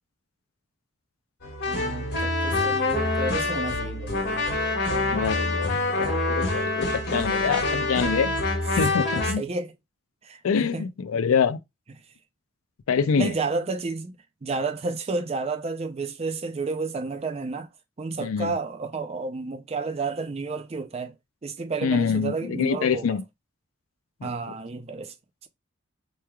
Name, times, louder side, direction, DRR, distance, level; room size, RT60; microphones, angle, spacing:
sound 1, 1.4-9.3, left 2 dB, 55° left, 1.5 m, -26 dB
voice 1, 1.6-4.2 9.4-9.7 10.2-10.9 13.2-14.1 14.4-17.7 18.0-21.1 21.4-23.2 24.2-25.1, right 3 dB, 30° right, 0.4 m, -31 dB
voice 2, 5.1-8.3 8.8-9.4 10.4-11.6 12.9-13.4 18.2-18.5 21.8-23.2 24.2-24.3, left 6 dB, 85° left, 0.4 m, -25 dB
4.6 x 3.1 x 2.2 m
head